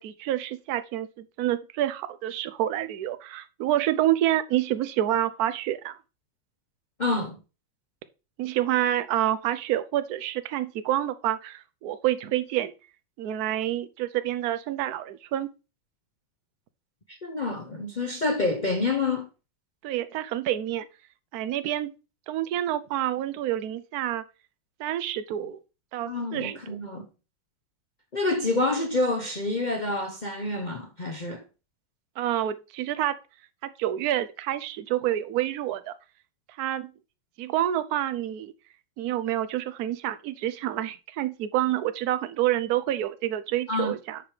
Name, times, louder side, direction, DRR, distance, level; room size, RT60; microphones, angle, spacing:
voice 1, 0.0-6.0 8.4-12.7 13.2-15.5 19.8-20.9 21.3-21.9 22.3-24.2 24.8-25.6 25.9-26.8 32.2-33.2 33.6-35.9 36.6-36.9 37.4-38.5 39.0-44.2, right 12 dB, 65° right, 1.0 m, -28 dB
voice 2, 7.0-7.4 17.1-19.3 26.1-27.0 28.1-31.4 43.7-44.0, left 2 dB, 60° left, 0.4 m, -28 dB
7.4 x 4.9 x 4.8 m
omnidirectional pair, 2.2 m